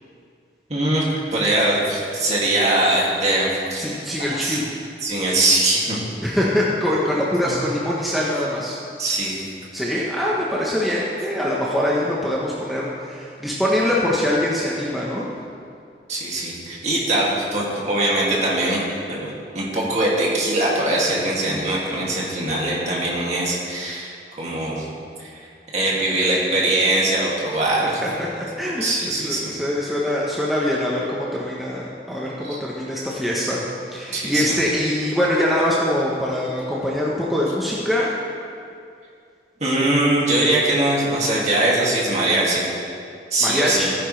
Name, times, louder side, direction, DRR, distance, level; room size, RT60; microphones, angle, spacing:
voice 1, 0.7-1.0 1.3-3.9 4.3-4.6 5.0-6.0 7.4-7.5 9.0-9.5 16.1-18.8 19.1-24.9 25.2-25.3 25.7-28.0 28.8-29.5 32.4-32.6 34.1-34.6 39.6-42.7 43.3-43.9, right 1 dB, 40° right, -5 dB, 2.3 m, -21 dB
voice 2, 3.8-4.7 6.2-8.8 9.7-15.3 27.8-33.6 33.9-38.1 43.4-43.9, left 1 dB, ahead, -6 dB, 0.9 m, -23 dB
15.5 x 9.5 x 3.3 m, 2.4 s
head